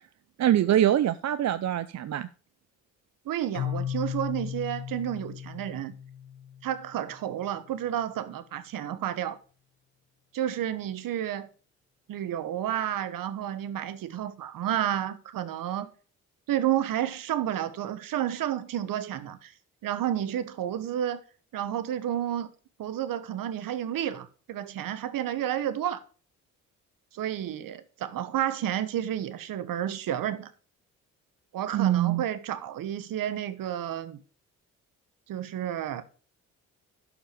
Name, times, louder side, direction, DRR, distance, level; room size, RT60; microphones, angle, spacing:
voice 1, 0.4-2.3 31.7-32.2, right 11 dB, 50° right, 0.6 m, -24 dB
voice 2, 3.2-5.9 6.6-9.4 10.3-11.5 12.1-15.9 16.5-19.5 19.8-21.2 21.5-22.5 22.8-26.0 27.1-30.5 31.5-34.2 35.3-36.0, right 11 dB, 70° right, 1.1 m, -31 dB
Keyboard (musical), 3.5-7.2, left 9 dB, 85° left, 0.9 m, -36 dB
11.5 x 5.0 x 5.1 m
hypercardioid pair, 50°, 35 cm